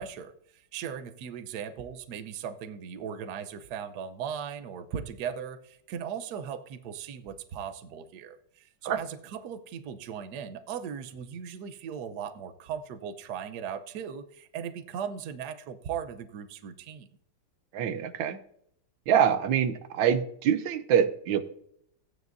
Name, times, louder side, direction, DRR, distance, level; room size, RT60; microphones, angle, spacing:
voice 1, 0.0-17.1, right 8 dB, 65° right, 10 dB, 1.2 m, -38 dB
voice 2, 17.7-18.4 19.1-21.5, right 8 dB, 85° right, 11 dB, 1.4 m, -25 dB
15.0 x 9.3 x 2.6 m, 0.70 s
omnidirectional pair, 2.1 m